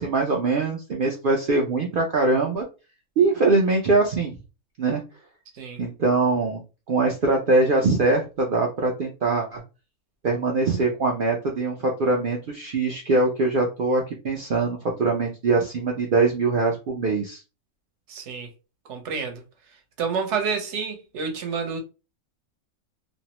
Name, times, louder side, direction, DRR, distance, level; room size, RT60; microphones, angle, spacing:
voice 1, 0.0-2.6 3.2-4.3 4.8-5.0 5.8-6.6 6.9-9.6 10.2-17.4, right 3 dB, 80° right, 0.4 m, -22 dB
voice 2, 18.1-18.5 18.9-19.4 20.0-21.8, right 5 dB, 60° right, 0.9 m, -29 dB
2.6 x 2.0 x 2.9 m
omnidirectional pair, 1.5 m